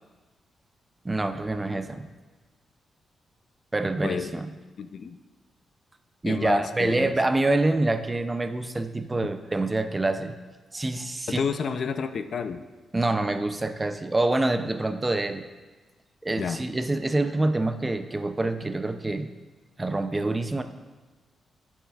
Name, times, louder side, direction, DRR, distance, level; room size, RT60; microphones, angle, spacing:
voice 1, 1.0-2.1 3.7-4.5 6.2-10.4 10.7-11.4 12.9-15.5 16.2-19.3 19.8-20.6, right 2 dB, 15° right, 9 dB, 0.4 m, -26 dB
voice 2, 4.0-4.3 4.8-5.2 6.2-7.1 11.3-12.6 16.4-16.6, left 6 dB, 50° left, 10 dB, 0.4 m, -30 dB
17.5 x 7.2 x 2.3 m, 1.3 s
wide cardioid pair, 140°, 0 cm